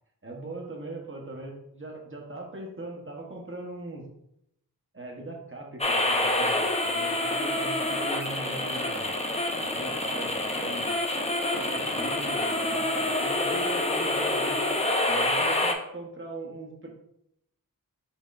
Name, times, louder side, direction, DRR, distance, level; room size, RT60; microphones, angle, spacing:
voice 1, 0.2-4.1 4.9-9.1 9.6-10.9 11.5-14.6 15.1-16.9, right 2 dB, 30° right, 0 dB, 1.1 m, -40 dB
sound 1, 5.8-15.7, left 1 dB, 15° left, 0.6 m, -27 dB
4.4 x 4.3 x 2.5 m, 0.78 s
wide cardioid pair, 45°, 38 cm